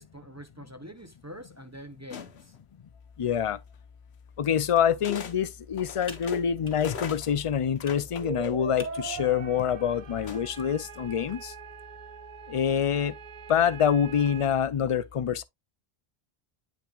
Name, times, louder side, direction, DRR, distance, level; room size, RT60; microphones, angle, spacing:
voice 1, 0.0-2.5, equal, 20° right, 0.6 m, -45 dB
sound 1, 2.1-2.6 3.7-3.8 5.0-5.4 5.7-8.9 10.2-10.7, left 6 dB, 85° left, 1.1 m, -41 dB
voice 2, 3.2-3.6 4.4-11.5 12.5-13.1 13.5-15.4, left 8 dB, 45° left, 0.5 m, -26 dB
Computer keyboard, 4.6-11.4, left 2 dB, 25° left, 2.0 m, -52 dB
sound 2, 8.0-14.5, right 6 dB, 50° right, 0.9 m, -41 dB
8.9 x 5.7 x 2.4 m
omnidirectional pair, 1.1 m